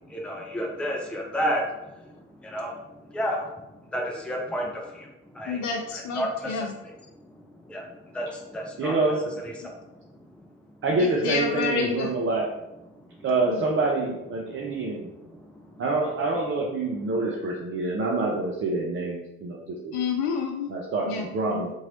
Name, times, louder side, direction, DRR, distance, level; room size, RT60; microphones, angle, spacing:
voice 1, 0.1-1.6 2.4-3.5 3.9-5.1 5.3-5.6 6.2-6.5 7.7-8.9 9.6-9.7 14.5-14.6 15.4-15.7, equal, 5° left, 0 dB, 0.6 m, -31 dB
voice 2, 5.5-6.8 11.0-12.1 13.5-13.6 19.9-20.7 21.0-21.7, left 5 dB, 50° left, 3 dB, 0.5 m, -29 dB
voice 3, 8.8-9.2 10.8-12.5 13.2-15.1 15.8-20.0 20.7-21.7, right 3 dB, 35° right, -2 dB, 0.6 m, -26 dB
2.9 x 2.7 x 2.9 m, 0.96 s
hypercardioid pair, 60°, 37 cm